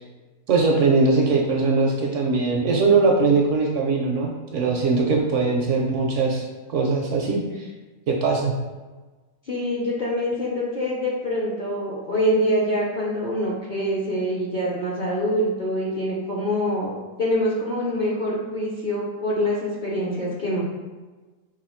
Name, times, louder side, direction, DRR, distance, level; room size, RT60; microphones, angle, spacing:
voice 1, 0.5-7.7 8.1-8.5, right 4 dB, 65° right, 0 dB, 0.8 m, -21 dB
voice 2, 9.5-16.9 17.2-20.6, equal, 45° left, -6 dB, 0.6 m, -25 dB
4.1 x 2.6 x 4.3 m, 1.3 s
omnidirectional pair, 1.6 m